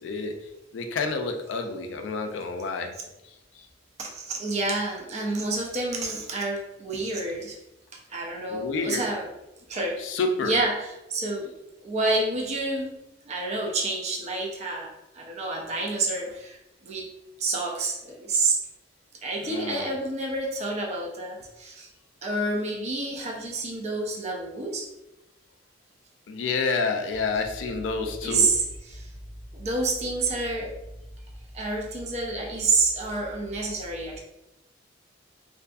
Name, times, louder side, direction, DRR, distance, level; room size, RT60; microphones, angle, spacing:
voice 1, 0.0-0.3 0.7-2.9 8.5-9.0 10.0-10.5 19.4-19.9 26.3-28.5, left 4 dB, 70° left, 5 dB, 0.4 m, -29 dB
voice 2, 4.0-7.6 8.1-9.3 9.7-10.0 10.4-11.5 11.8-12.9 13.3-17.1 17.4-18.6 19.2-21.9 22.2-24.9 28.2-29.1 29.5-30.7 31.5-34.2, right 3 dB, 35° right, 1 dB, 0.4 m, -28 dB
2.6 x 2.4 x 2.3 m, 0.92 s
head